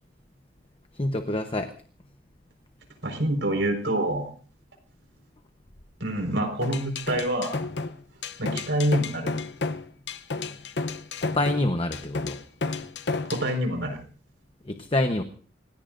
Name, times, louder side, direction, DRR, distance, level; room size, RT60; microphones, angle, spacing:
voice 1, 1.0-1.7 11.2-12.4 14.7-15.2, left 1 dB, 30° left, 7 dB, 1.0 m, -26 dB
voice 2, 3.0-4.3 6.0-7.6 8.4-9.3 13.2-14.0, right 1 dB, 70° right, 4 dB, 4.8 m, -26 dB
sound 1, 6.6-13.5, left 3 dB, 60° left, 0.8 m, -31 dB
28.5 x 17.0 x 2.6 m, 0.43 s
head